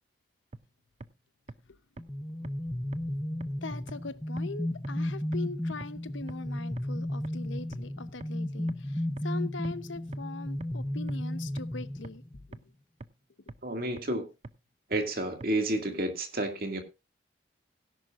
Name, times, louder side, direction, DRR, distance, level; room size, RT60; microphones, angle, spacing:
sound 1, 0.5-0.6 1.0-1.1 1.5-1.6 2.0-2.1 2.4-2.5 2.9-3.0 3.4-3.5 3.9-4.0 4.4-4.5 4.8-4.9 5.3-5.4 5.8-5.9 6.3-6.4 6.8-6.9 7.2-7.3 7.7-7.8 8.2-8.3 8.7-8.8 9.2-9.3 9.6-9.7 10.1-10.2 10.6-10.7 11.1-11.2 11.6-11.7 12.0-12.1 12.5-12.6 13.0-13.1 13.5-13.6 14.0-14.1 14.4-14.5 14.9-15.0 15.4-15.5, right 2 dB, 35° right, 0.5 m, -42 dB
sound 2, 2.0-12.5, left 1 dB, 10° left, 0.6 m, -34 dB
voice 1, 3.6-12.2 12.5-12.6, left 3 dB, 85° left, 13 dB, 0.9 m, -41 dB
voice 2, 13.6-14.3 14.9-16.8, right 1 dB, 50° right, 5 dB, 2.2 m, -30 dB
17.5 x 10.5 x 2.5 m, 0.26 s
head